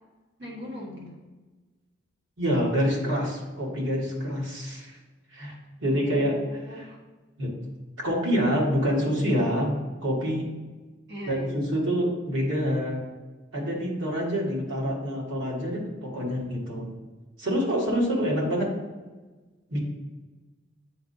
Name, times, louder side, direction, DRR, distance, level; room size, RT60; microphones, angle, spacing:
voice 1, 0.4-1.2 5.9-7.0 11.1-11.6, left 1 dB, 60° right, -5 dB, 1.5 m, -41 dB
voice 2, 2.4-5.0 5.3-5.5 5.8-6.3 7.4-7.5 8.0-9.7 10.0-10.5 11.3-13.0 13.5-16.9 17.4-18.7 19.7-19.8, equal, 80° right, -3 dB, 1.7 m, -26 dB
8.3 x 4.3 x 2.8 m, 1.3 s
head